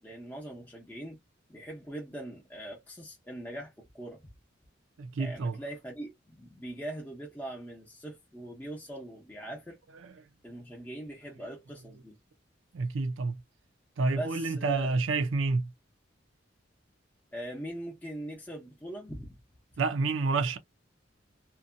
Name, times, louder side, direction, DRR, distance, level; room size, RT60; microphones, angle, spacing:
voice 1, 0.0-1.2 1.5-4.3 5.2-9.8 10.4-12.2 14.1-14.9 17.3-19.3, right 1 dB, 10° left, 0.7 m, -41 dB
voice 2, 5.0-5.6 10.0-10.1 12.7-13.4 14.0-15.7 19.8-20.6, right 3 dB, 90° right, 0.5 m, -29 dB
2.6 x 2.2 x 2.5 m
head